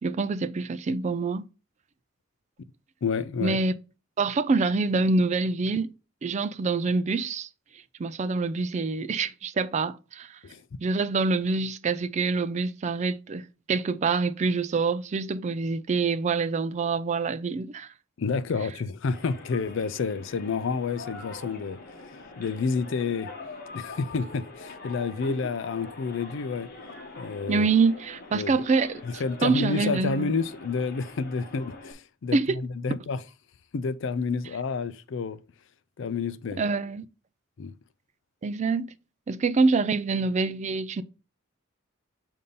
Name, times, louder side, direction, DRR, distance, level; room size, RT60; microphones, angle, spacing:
voice 1, 0.0-1.4 3.4-3.7 4.2-5.9 6.2-7.5 8.0-10.4 10.8-17.9 25.3-25.4 27.5-30.3 32.3-32.6 36.6-37.1 38.4-38.9 39.3-41.0, right 4 dB, 35° right, 0.3 m, -26 dB
voice 2, 3.0-3.6 10.4-10.6 18.2-21.8 22.4-23.3 23.7-26.7 27.2-27.7 28.3-28.6 29.0-33.2 33.7-35.4 36.0-36.6 37.6-37.7, left 4 dB, 65° left, 0.4 m, -29 dB
creaking subway escalator, 19.1-31.9, left 3 dB, 50° left, 1.0 m, -44 dB
6.8 x 2.7 x 5.3 m
head